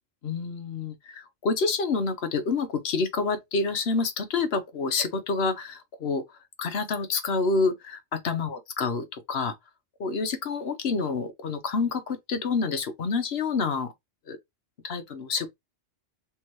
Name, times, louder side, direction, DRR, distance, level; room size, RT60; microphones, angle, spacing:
voice 1, 0.2-6.2 6.6-9.5 10.0-13.9 14.3-14.4 14.8-15.5, left 4 dB, 60° left, 1.0 m, -28 dB
3.5 x 3.2 x 2.9 m
omnidirectional pair, 1.3 m